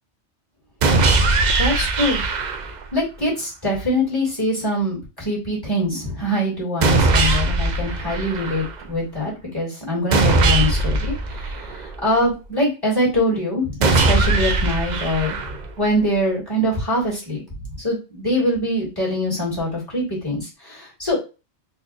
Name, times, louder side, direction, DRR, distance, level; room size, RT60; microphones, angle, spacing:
sound 1, 0.8-2.8 6.8-8.8 10.1-12.1 13.8-15.8, right 3 dB, 60° right, 0.5 m, -20 dB
voice 1, 1.6-2.2 2.9-21.2, equal, 20° left, -7 dB, 1.9 m, -23 dB
4.1 x 2.7 x 2.4 m, 0.30 s
omnidirectional pair, 1.2 m